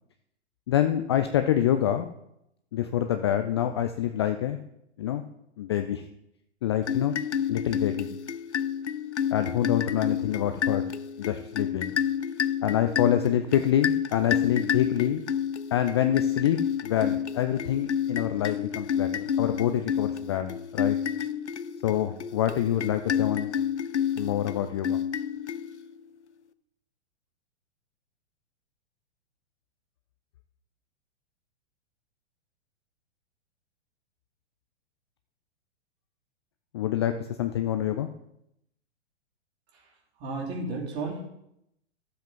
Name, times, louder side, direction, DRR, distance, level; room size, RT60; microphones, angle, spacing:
voice 1, 0.7-2.1 2.7-4.6 5.0-5.2 5.6-6.0 6.6-7.1 7.5-8.1 9.3-10.9 11.2-12.0 12.6-15.2 15.7-21.0 21.8-23.5 24.2-25.0 36.7-38.1, left 11 dB, 25° left, 8 dB, 0.3 m, -26 dB
sound 1, 6.8-26.0, left 8 dB, 75° left, 0.6 m, -30 dB
voice 2, 40.2-41.2, right 3 dB, 30° right, -2 dB, 2.9 m, -32 dB
12.5 x 7.7 x 3.8 m, 0.79 s
figure-of-eight pair, 110°, 35 cm